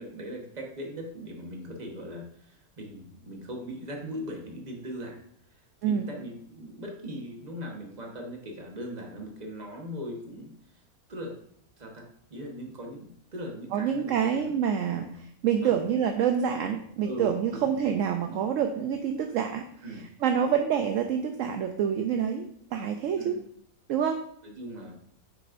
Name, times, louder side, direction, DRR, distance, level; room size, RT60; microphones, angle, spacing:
voice 1, 0.0-5.2 5.5-10.5 11.1-11.4 11.8-14.5 14.9-15.1 15.6-15.8 17.0-17.8 19.8-20.0 23.2-23.4 24.4-25.0, equal, 30° right, 1 dB, 1.2 m, -39 dB
voice 2, 13.7-15.1 15.4-19.7 20.2-23.4 23.9-24.2, right 8 dB, 70° right, 6 dB, 0.9 m, -27 dB
8.6 x 6.3 x 2.6 m, 0.66 s
omnidirectional pair, 1.6 m